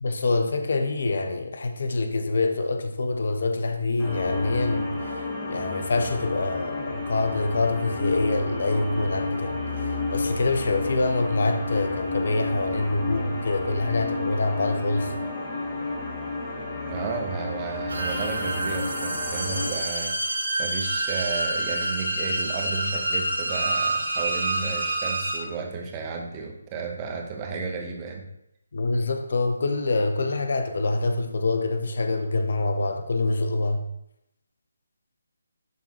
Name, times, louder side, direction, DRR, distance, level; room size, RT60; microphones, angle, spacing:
voice 1, 0.0-15.1 27.5-27.6 28.7-33.8, left 2 dB, 50° left, 0.7 m, -26 dB
sound 1, 4.0-19.7, left 3 dB, 15° left, 1.3 m, -31 dB
voice 2, 16.9-28.2, right 5 dB, 20° right, 0.9 m, -33 dB
sound 2, 17.9-25.4, right 2 dB, 65° right, 1.5 m, -27 dB
11.0 x 3.8 x 2.9 m
figure-of-eight pair, 145°, 0 cm